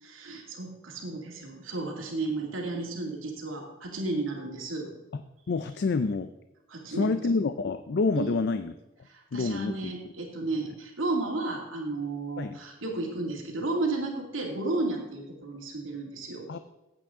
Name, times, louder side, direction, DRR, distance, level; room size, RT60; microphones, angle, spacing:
voice 1, 0.0-4.9 6.7-7.4 8.2-8.4 9.1-16.5, right 2 dB, 85° right, 0 dB, 2.3 m, -33 dB
voice 2, 5.5-6.3 6.9-8.7 9.3-9.9 12.4-12.6 16.5-16.6, left 4 dB, 55° left, 10 dB, 0.4 m, -28 dB
15.5 x 8.6 x 3.7 m, 0.98 s
head